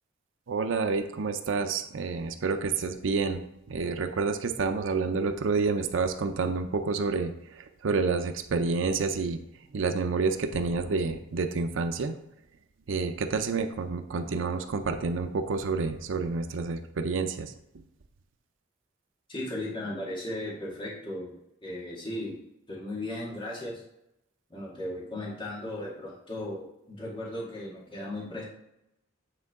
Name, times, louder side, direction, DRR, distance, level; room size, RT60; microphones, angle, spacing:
voice 1, 0.5-3.4 3.7-9.4 9.7-12.1 12.9-17.5, right 4 dB, 85° right, 6 dB, 0.5 m, -29 dB
voice 2, 19.3-21.4 21.6-22.3 22.7-23.8 24.5-28.4, left 1 dB, 25° left, -4 dB, 1.9 m, -36 dB
8.9 x 3.8 x 3.6 m, 0.83 s
head